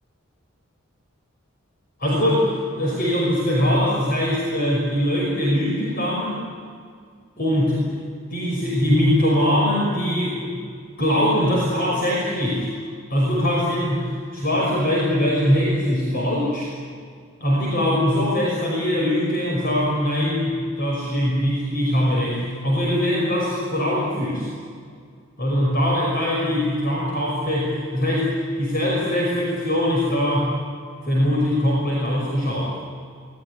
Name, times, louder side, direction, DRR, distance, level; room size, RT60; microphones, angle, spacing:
voice 1, 2.0-6.4 7.4-7.9 8.3-10.6 11.0-12.7 13.1-16.7 17.4-24.5 25.4-30.5 31.0-32.8, equal, 45° left, -3 dB, 5.8 m, -22 dB
26.5 x 20.5 x 9.9 m, 2.1 s
head